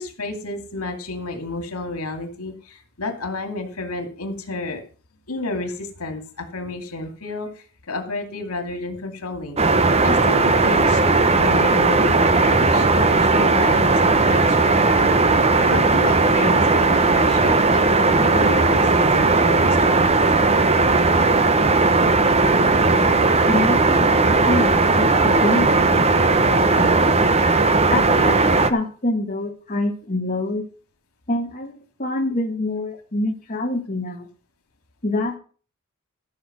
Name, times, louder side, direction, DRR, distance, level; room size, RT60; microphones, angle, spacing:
voice 1, 0.0-4.8 5.3-9.6 10.0-20.1, left 2 dB, 85° left, 5 dB, 2.6 m, -31 dB
sound 1, 9.6-28.7, right 3 dB, 30° right, 0.9 m, -17 dB
voice 2, 22.9-24.2 24.5-27.2 27.9-30.7 31.3-34.3 35.0-35.4, left 2 dB, 35° left, 1 dB, 1.6 m, -26 dB
14.0 x 6.6 x 6.1 m, 0.40 s
head